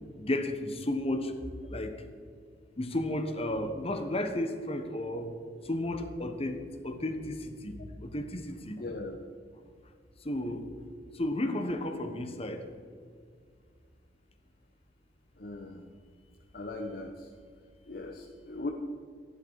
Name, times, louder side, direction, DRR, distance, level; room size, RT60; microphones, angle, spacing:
voice 1, 0.2-1.3 1.7-1.9 2.8-5.3 5.6-8.8 10.2-10.7 11.1-12.6, left 1 dB, 35° left, 7 dB, 1.3 m, -33 dB
voice 2, 8.8-9.2 15.4-15.8 16.5-17.3 17.9-18.7, left 2 dB, 60° left, 1 dB, 1.0 m, -39 dB
14.5 x 11.5 x 4.8 m, 2.1 s
head